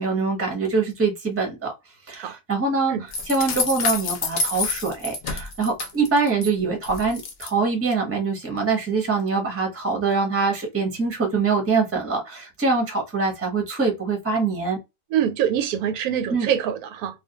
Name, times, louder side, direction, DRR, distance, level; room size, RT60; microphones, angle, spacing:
voice 1, 0.0-1.7 2.1-14.8 16.3-16.5, right 4 dB, 15° right, 0.6 m, -24 dB
sound 1, 3.1-6.5 6.8-7.5, left 3 dB, 65° left, 0.6 m, -28 dB
voice 2, 15.1-17.2, right 9 dB, 90° right, 1.1 m, -24 dB
2.4 x 2.2 x 2.7 m
omnidirectional pair, 1.5 m